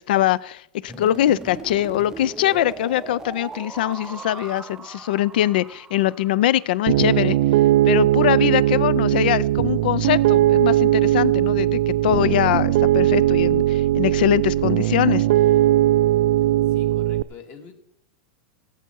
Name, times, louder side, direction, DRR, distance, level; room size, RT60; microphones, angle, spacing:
voice 1, 0.1-7.4 7.8-15.3, left 13 dB, 75° left, 21 dB, 0.4 m, -22 dB
sound 1, 0.9-6.8, right 4 dB, 10° right, 0.5 m, -38 dB
Piano, 6.9-17.2, right 14 dB, 70° right, 0.4 m, -19 dB
voice 2, 16.6-17.8, left 6 dB, 40° left, 5 dB, 2.3 m, -45 dB
16.5 x 8.1 x 4.5 m, 0.78 s
supercardioid pair, 125°, 5 cm